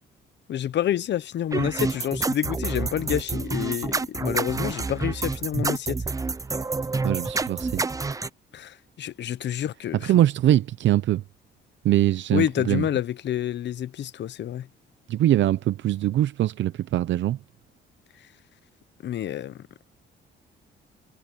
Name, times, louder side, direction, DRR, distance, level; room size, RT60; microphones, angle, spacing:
voice 1, 0.5-6.0 8.5-10.1 12.3-14.7 19.0-19.7, left 11 dB, 65° left, 0.9 m, -28 dB
sound 1, 1.5-8.3, right 3 dB, 15° right, 0.5 m, -28 dB
voice 2, 7.0-7.8 10.0-11.2 11.8-12.9 15.1-17.4, right 13 dB, 70° right, 0.7 m, -22 dB
cardioid pair, 90°, 20 cm